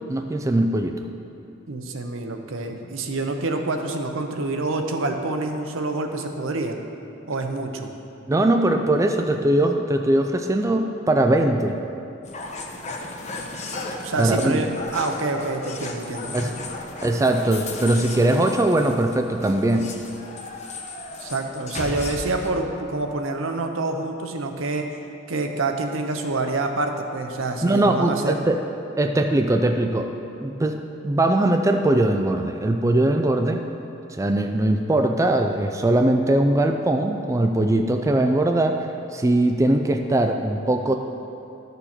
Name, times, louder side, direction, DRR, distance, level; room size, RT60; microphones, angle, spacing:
voice 1, 0.1-1.0 8.3-11.8 14.2-14.6 16.3-16.5 17.0-19.9 27.6-28.6 29.0-30.1 30.4-30.8 31.0-33.6 34.1-38.9 39.1-40.9, right 1 dB, 15° right, 4 dB, 0.3 m, -21 dB
voice 2, 1.7-6.8 7.3-7.9 14.0-16.8 21.2-24.9 25.3-28.4, right 2 dB, 75° right, 4 dB, 0.8 m, -27 dB
sound 1, 12.2-22.5, left 2 dB, 35° left, 0.9 m, -35 dB
13.0 x 6.8 x 4.4 m, 2.8 s
head